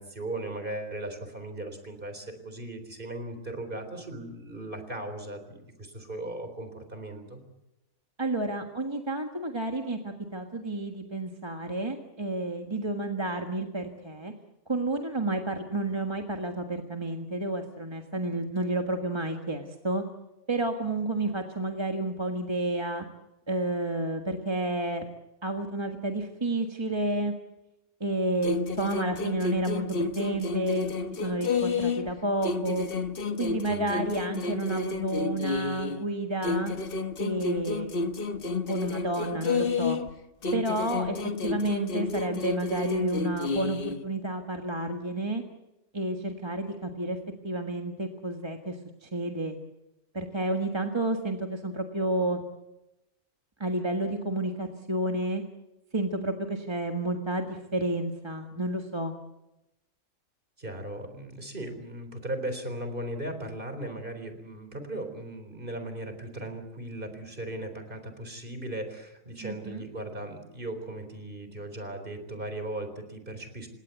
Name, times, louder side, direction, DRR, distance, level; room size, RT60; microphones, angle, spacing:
voice 1, 0.0-7.4 33.7-34.0 60.6-73.7, right 1 dB, 35° right, 8 dB, 4.1 m, -37 dB
voice 2, 8.2-14.3 14.7-20.0 20.5-23.1 23.5-25.1 25.4-27.3 28.0-32.9 33.4-36.7 37.2-38.0 38.7-40.0 40.5-45.4 45.9-47.2 47.4-49.6 50.1-52.4 53.6-55.4 55.9-59.1 69.4-69.8, right 2 dB, 20° right, 3 dB, 1.6 m, -30 dB
sound 1, 28.4-32.1 32.4-36.1 36.4-40.1 40.4-44.1, left 4 dB, 45° left, 1.3 m, -31 dB
29.5 x 17.5 x 8.3 m, 0.94 s
omnidirectional pair, 1.5 m